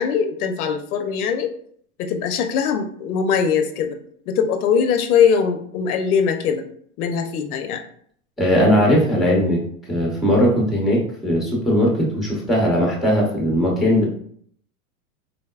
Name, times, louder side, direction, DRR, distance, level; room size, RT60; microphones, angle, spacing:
voice 1, 0.0-1.5 2.0-4.0 4.3-6.7 7.0-7.8, left 7 dB, 80° left, 6 dB, 0.6 m, -21 dB
voice 2, 8.4-9.6 9.9-14.1, equal, ahead, -2 dB, 0.8 m, -19 dB
3.9 x 2.0 x 2.3 m, 0.62 s
hypercardioid pair, 115°, 43 cm